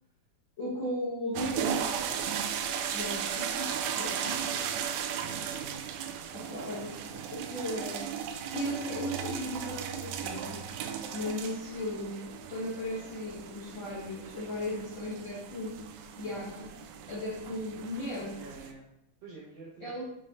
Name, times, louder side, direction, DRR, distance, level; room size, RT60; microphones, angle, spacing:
voice 1, 0.6-1.9 2.9-4.7 6.3-8.1 8.5-15.8 16.2-16.7 17.1-18.4 19.8-20.0, left 1 dB, 60° left, -8 dB, 1.2 m, -37 dB
sound 1, 1.4-18.7, right 8 dB, 85° right, 2.4 m, -36 dB
voice 2, 1.9-2.3 3.7-4.9 16.2-16.4 18.3-18.9 19.2-20.0, right 3 dB, 70° right, -5 dB, 1.6 m, -49 dB
6.3 x 6.3 x 3.0 m, 0.79 s
omnidirectional pair, 4.2 m